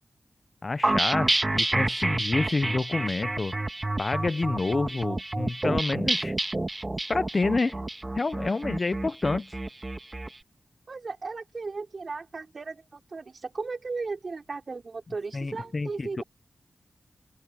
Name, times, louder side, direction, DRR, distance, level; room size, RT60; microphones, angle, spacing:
voice 1, 0.6-3.6 4.0-6.3 7.1-7.8 8.2-9.6 15.3-16.2, left 3 dB, 40° left, 0.6 m, -28 dB
sound 1, 0.8-10.3, right 2 dB, 25° right, 1.7 m, -29 dB
voice 2, 10.9-16.2, right 4 dB, 55° right, 4.1 m, -36 dB
open air
wide cardioid pair, 100°, 0 cm